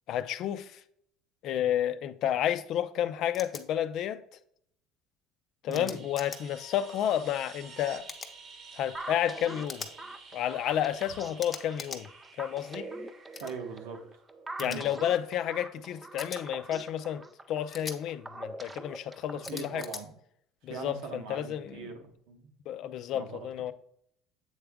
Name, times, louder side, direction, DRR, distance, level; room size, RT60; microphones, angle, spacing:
voice 1, 0.1-0.8 1.4-4.2 5.6-8.0 8.7-9.9 10.3-12.1 12.4-12.9 14.6-19.8 20.6-21.9 22.7-23.7, left 11 dB, 60° left, 0.5 m, -31 dB
sound 1, 3.3-3.6 5.7-6.4 8.1-8.3 9.7-9.9 11.4-12.0 13.3-13.5 14.6-14.8 16.2-16.4 17.7-18.0 19.4-20.0, left 4 dB, 25° left, 0.8 m, -41 dB
sound 2, 6.0-14.6 17.0-17.1, right 4 dB, 50° right, 1.0 m, -51 dB
sound 3, 8.9-20.0, right 2 dB, 15° right, 0.4 m, -44 dB
voice 2, 13.4-14.0 14.6-14.9 19.4-20.1 20.7-22.5 23.1-23.7, right 5 dB, 85° right, 1.2 m, -41 dB
7.9 x 3.4 x 3.6 m
cardioid pair, 120°, 0 cm